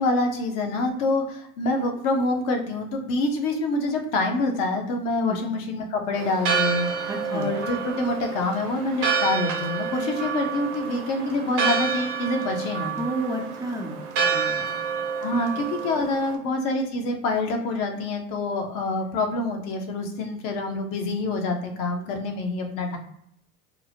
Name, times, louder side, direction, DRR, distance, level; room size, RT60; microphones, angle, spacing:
voice 1, 0.0-12.9 15.2-23.0, left 2 dB, 50° left, 3 dB, 0.8 m, -26 dB
Church bell, 6.1-16.3, right 5 dB, 45° right, 0.8 m, -28 dB
voice 2, 7.1-7.5 9.9-10.0 13.0-14.7, right 1 dB, 10° right, -3 dB, 0.4 m, -31 dB
2.8 x 2.0 x 2.7 m, 0.75 s
hypercardioid pair, 85°, 42 cm